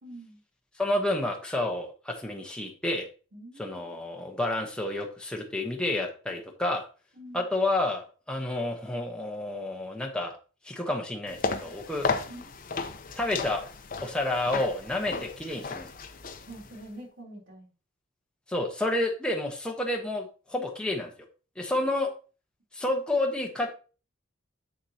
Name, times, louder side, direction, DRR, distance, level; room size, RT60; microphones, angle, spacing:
voice 1, 0.0-0.4 3.3-3.7 7.2-7.5 12.3-12.5 15.1-15.2 16.5-17.7 21.7-21.9, right 1 dB, 70° right, -2 dB, 3.6 m, -45 dB
voice 2, 0.8-3.1 3.6-6.9 7.3-10.4 10.6-12.1 13.2-13.6 14.0-15.9 18.5-21.1 21.6-22.1 22.7-23.7, left 2 dB, 5° left, 0 dB, 1.0 m, -30 dB
sound 1, 11.3-16.9, left 4 dB, 45° left, 0.8 m, -34 dB
7.8 x 7.2 x 2.8 m, 0.36 s
head